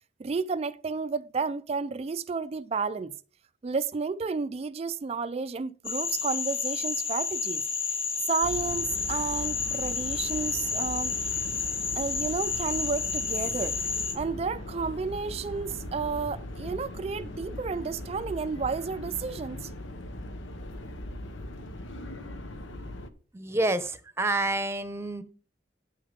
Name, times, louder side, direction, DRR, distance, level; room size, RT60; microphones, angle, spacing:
voice 1, 0.2-3.1 3.6-7.7 8.3-11.1 11.9-13.8 14.1-19.7, right 4 dB, 30° right, 0.3 m, -31 dB
Frog, 5.8-14.2, left 5 dB, 30° left, 1.3 m, -31 dB
sound 1, 8.4-23.1, left 1 dB, 85° left, 1.0 m, -40 dB
voice 2, 23.3-25.2, right 2 dB, 15° right, 0.8 m, -28 dB
9.5 x 6.5 x 5.2 m
head